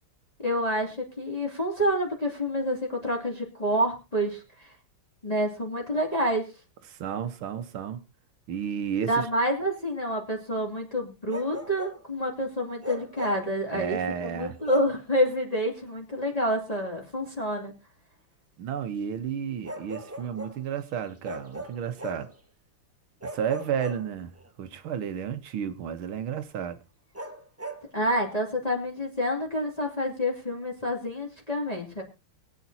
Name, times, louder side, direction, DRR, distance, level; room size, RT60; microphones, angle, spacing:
voice 1, 0.4-4.7 5.2-6.5 9.0-17.7 27.9-32.0, equal, 15° left, 2.7 m, -28 dB
voice 2, 6.9-8.0 8.5-9.3 13.7-14.6 18.6-22.3 23.2-24.3 24.6-26.8, right 8 dB, 70° right, 1.8 m, -32 dB
Bark, 11.3-12.0 12.8-13.5 14.6-15.0 16.7-16.9 19.6-20.6 21.2-22.4 23.2-24.5 27.1-27.9, right 1 dB, 10° right, 0.9 m, -39 dB
23.5 x 8.6 x 2.8 m
omnidirectional pair, 2.4 m